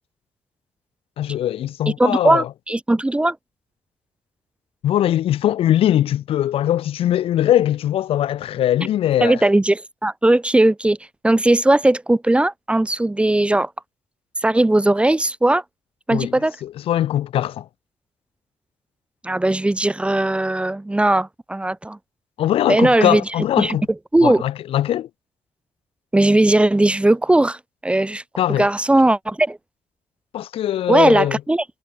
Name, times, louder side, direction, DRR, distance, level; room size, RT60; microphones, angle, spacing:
voice 1, 1.2-2.5 4.8-9.4 16.1-16.3 16.6-17.7 22.4-23.9 24.2-25.1 28.4-28.7 30.3-31.4, left 12 dB, 80° left, 2.8 m, -21 dB
voice 2, 2.0-3.4 9.2-11.0 11.2-13.7 14.4-15.6 16.1-16.5 19.2-22.0 22.7-23.2 23.6-23.8 24.1-24.4 26.1-27.6 27.8-28.2 28.6-29.6 30.9-31.6, right 1 dB, 10° right, 1.2 m, -18 dB
cardioid pair, 95°, 9 cm